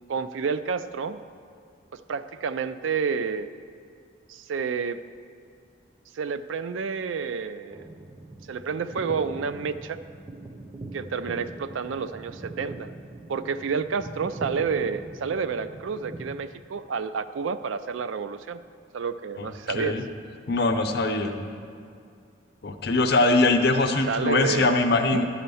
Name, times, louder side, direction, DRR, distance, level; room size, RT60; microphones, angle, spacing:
voice 1, 0.1-1.2 1.9-3.5 4.3-5.0 6.1-7.8 8.5-10.0 10.9-12.9 13.3-18.6 18.9-20.0 24.1-24.8 25.0-25.2, right 5 dB, 85° right, 12 dB, 0.4 m, -29 dB
sound 1, 7.7-16.4, right 2 dB, 15° right, 0.4 m, -41 dB
voice 2, 19.4-20.0 20.5-21.3 22.6-25.2, left 2 dB, 55° left, 6 dB, 0.6 m, -22 dB
11.5 x 4.3 x 6.9 m, 2.3 s
head